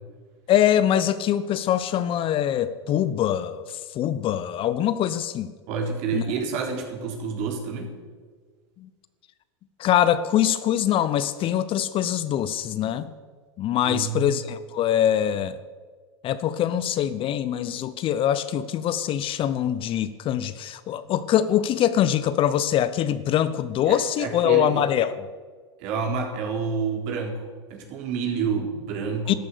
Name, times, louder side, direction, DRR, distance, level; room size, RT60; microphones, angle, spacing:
voice 1, 0.5-5.5 6.1-6.2 8.8-8.9 9.8-13.1 13.6-15.6 16.2-25.3 29.3-29.4, left 10 dB, 35° left, 14 dB, 0.8 m, -23 dB
voice 2, 5.7-7.9 13.8-14.2 23.9-24.8 25.8-27.4 27.7-29.4, right 5 dB, 50° right, 1 dB, 3.8 m, -28 dB
13.5 x 12.0 x 6.7 m, 1.5 s
hypercardioid pair, 95°, 15 cm